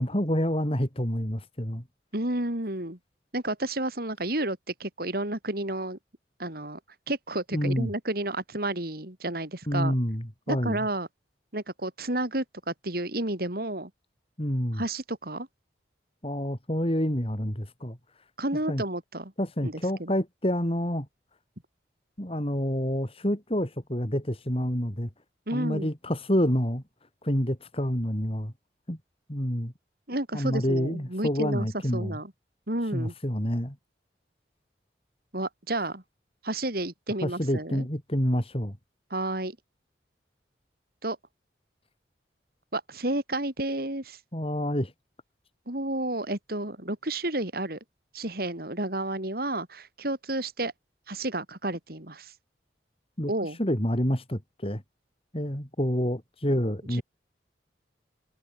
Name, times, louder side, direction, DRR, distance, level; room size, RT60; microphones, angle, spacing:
voice 1, 0.0-1.8 7.5-7.9 9.7-10.8 14.4-14.8 16.2-18.0 18.7-18.8 19.4-21.1 22.2-25.1 25.5-26.8 27.2-28.5 28.9-29.0 29.3-29.7 30.3-32.2 32.9-33.8 37.2-38.8 44.3-44.9 53.2-54.8 55.3-57.0, equal, 35° left, 4.6 m, -28 dB
voice 2, 2.1-3.0 3.3-6.0 6.4-6.8 7.1-9.9 10.5-11.1 11.5-13.9 14.7-15.5 18.4-19.3 19.6-20.1 25.5-25.9 30.1-31.7 31.9-32.3 32.7-33.1 35.3-36.0 36.4-37.8 39.1-39.6 41.0-41.2 42.7-44.2 45.7-47.8 48.1-50.7 51.1-52.3 53.3-53.6 56.9-57.0, right 1 dB, 55° right, 4.1 m, -31 dB
head